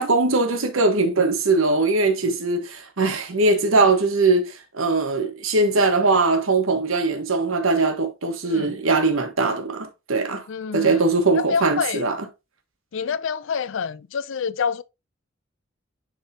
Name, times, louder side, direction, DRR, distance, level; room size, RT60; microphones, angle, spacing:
voice 1, 0.0-10.5 10.7-12.3, right 3 dB, 85° right, 1.2 m, -21 dB
voice 2, 10.5-11.1 11.4-12.0 12.9-14.8, left 6 dB, 65° left, 0.4 m, -27 dB
10.0 x 3.5 x 2.7 m
head